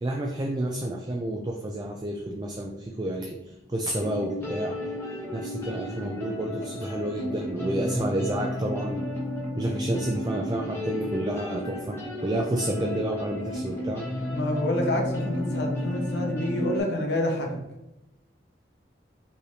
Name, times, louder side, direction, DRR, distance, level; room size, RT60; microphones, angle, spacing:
voice 1, 0.0-4.8 5.3-9.1 9.6-14.1, right 1 dB, 20° right, 1 dB, 0.3 m, -30 dB
sound 1, 3.5-3.6 4.0-16.8, left 1 dB, 15° left, 1.0 m, -33 dB
voice 2, 14.3-17.6, left 1 dB, 70° left, 1 dB, 0.8 m, -28 dB
4.6 x 3.2 x 2.7 m, 0.94 s
head